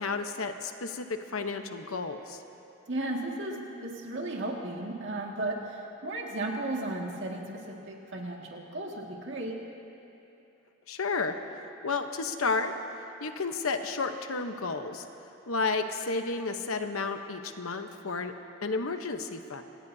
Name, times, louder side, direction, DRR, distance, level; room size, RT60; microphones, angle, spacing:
voice 1, 0.0-2.4 10.9-11.3 11.8-12.7 13.2-15.0 15.5-18.3 18.6-19.6, left 4 dB, 90° left, 7 dB, 1.0 m, -32 dB
voice 2, 2.9-9.6, right 2 dB, 60° right, -1 dB, 2.0 m, -35 dB
27.0 x 18.5 x 2.8 m, 2.8 s
head